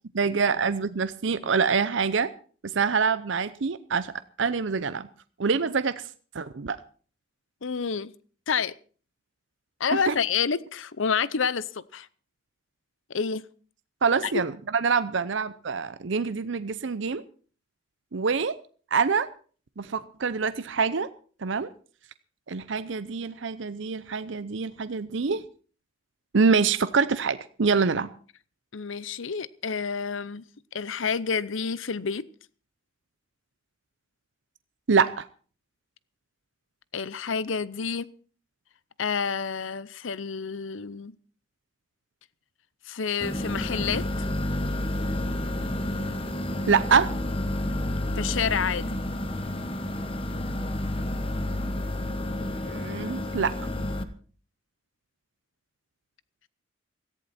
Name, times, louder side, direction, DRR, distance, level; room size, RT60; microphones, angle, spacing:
voice 1, 0.1-2.3 2.6-4.1 4.4-5.1 5.4-6.0 6.3-6.8 10.1-10.2 14.0-17.2 18.1-18.5 18.9-19.3 19.8-21.1 21.4-21.7 22.5-25.4 26.3-28.1 34.9-35.3 46.7-47.1 52.6-53.5, right 5 dB, 65° right, 13 dB, 0.6 m, -25 dB
voice 2, 7.6-8.1 8.5-8.7 9.8-12.1 13.1-13.4 14.2-14.3 28.7-30.4 30.7-32.2 36.9-38.1 39.0-41.1 42.9-44.3 48.2-48.9, left 6 dB, 75° left, 19 dB, 0.7 m, -29 dB
sound 1, 43.2-54.0, left 1 dB, 25° left, 1.2 m, -30 dB
17.5 x 14.5 x 4.3 m, 0.41 s
head